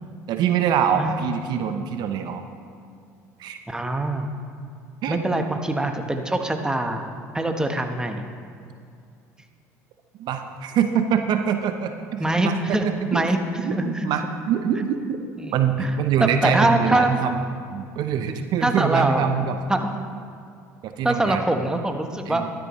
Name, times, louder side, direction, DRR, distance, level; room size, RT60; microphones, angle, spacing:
voice 1, 0.3-2.4 3.4-3.6 5.0-5.2 10.2-12.8 13.1-13.2 13.6-15.2 15.5-17.4 17.7-19.6 20.8-21.4 22.3-22.5, right 8 dB, 60° right, 7 dB, 0.7 m, -24 dB
voice 2, 3.7-4.3 5.1-7.1 7.3-8.3 12.2-13.4 13.7-14.1 15.4-15.9 16.2-17.3 18.6-19.4 19.7-19.9 21.0-22.4, right 1 dB, 10° right, 5 dB, 1.1 m, -23 dB
13.0 x 12.0 x 3.1 m, 2.3 s
hypercardioid pair, 75°, 8 cm